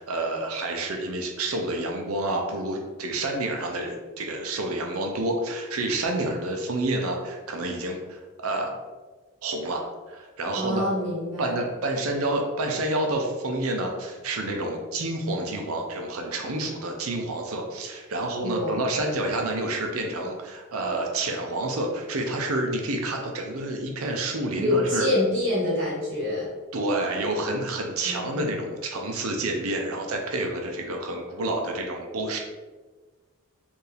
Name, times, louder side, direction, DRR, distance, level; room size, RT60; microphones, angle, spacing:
voice 1, 0.0-8.7 9.4-9.8 10.1-10.8 11.4-25.1 26.7-32.4, right 2 dB, 85° right, 2 dB, 0.7 m, -29 dB
voice 2, 10.5-11.6 18.4-18.9 24.5-26.5 28.0-28.6, left 1 dB, 60° right, -6 dB, 1.5 m, -26 dB
4.6 x 2.7 x 3.3 m, 1.3 s
head